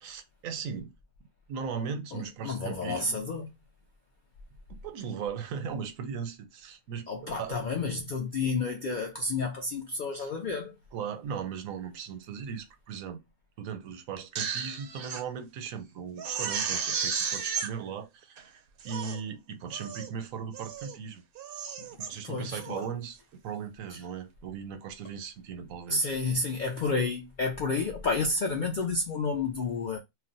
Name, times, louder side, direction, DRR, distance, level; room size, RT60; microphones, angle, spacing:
voice 1, 0.0-0.9 1.5-3.2 4.7-7.7 10.1-10.3 10.9-13.2 13.6-21.2 22.0-26.2, right 6 dB, 85° right, 1.0 m, -38 dB
voice 2, 2.1-3.5 7.1-10.7 22.2-22.9 25.9-30.0, left 3 dB, 90° left, 0.4 m, -30 dB
Crying sobbing, 14.2-15.2 15.7-15.8 16.2-17.7 18.4-18.5 18.8-19.2 19.7-20.1 20.5-21.0 21.3-22.1 22.6-22.9, right 6 dB, 65° right, 0.6 m, -33 dB
2.4 x 2.1 x 3.8 m
omnidirectional pair, 1.4 m